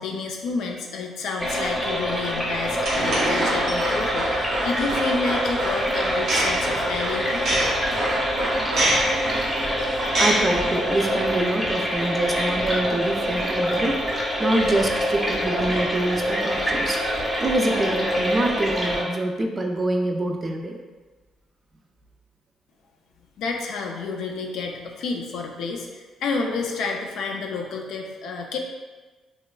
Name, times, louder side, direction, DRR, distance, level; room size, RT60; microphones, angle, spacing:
voice 1, 0.0-7.4 23.4-28.6, left 4 dB, 80° left, 1 dB, 0.4 m, -30 dB
sound 1, 1.4-19.0, equal, 5° left, 0.7 m, -25 dB
sound 2, 2.8-11.1, right 1 dB, 80° right, 0.7 m, -27 dB
voice 2, 10.2-17.0 17.4-20.8, right 1 dB, 30° right, 2 dB, 0.3 m, -25 dB
2.9 x 2.2 x 2.3 m, 1.3 s
cardioid pair, 90°, 0 cm